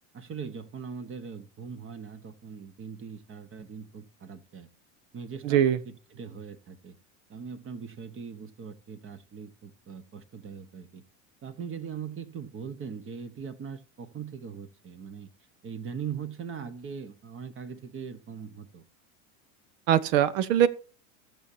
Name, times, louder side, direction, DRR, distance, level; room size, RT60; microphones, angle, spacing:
voice 1, 0.1-4.7 5.1-6.9 7.3-11.0 11.4-15.3 15.6-18.8, right 6 dB, 30° right, 1.2 m, -40 dB
voice 2, 5.4-5.8 19.9-20.7, right 10 dB, 65° right, 1.0 m, -22 dB
17.0 x 7.1 x 2.8 m
hypercardioid pair, 110°, 42 cm